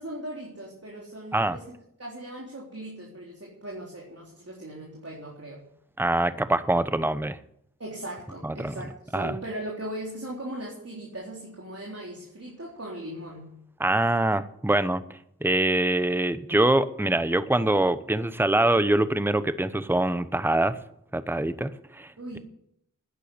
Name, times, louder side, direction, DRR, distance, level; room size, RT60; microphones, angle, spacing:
voice 1, 0.0-1.7 2.0-5.6 7.8-13.5 22.2-22.4, right 1 dB, 45° right, -3 dB, 3.7 m, -38 dB
voice 2, 6.0-7.4 8.4-8.7 9.1-9.4 13.8-15.0 15.4-20.8 21.1-22.1, right 1 dB, 5° right, 13 dB, 0.9 m, -24 dB
10.5 x 10.0 x 9.8 m, 0.72 s
wide cardioid pair, 50°, 33 cm